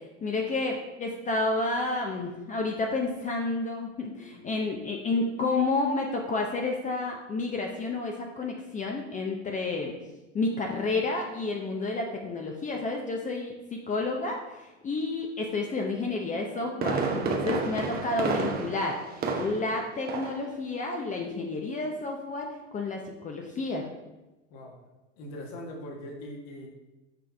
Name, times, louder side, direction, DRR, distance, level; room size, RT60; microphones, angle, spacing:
voice 1, 0.2-9.9 10.3-14.6 14.8-22.5 22.7-23.9, left 3 dB, 20° left, 1 dB, 0.7 m, -30 dB
Fireworks, 16.3-19.8 20.1-20.5 20.8-20.9, right 4 dB, 25° right, 0.8 m, -30 dB
voice 2, 25.2-26.7, left 1 dB, 55° left, 1 dB, 1.6 m, -41 dB
6.0 x 4.9 x 3.4 m, 1.1 s
hypercardioid pair, 95°, 37 cm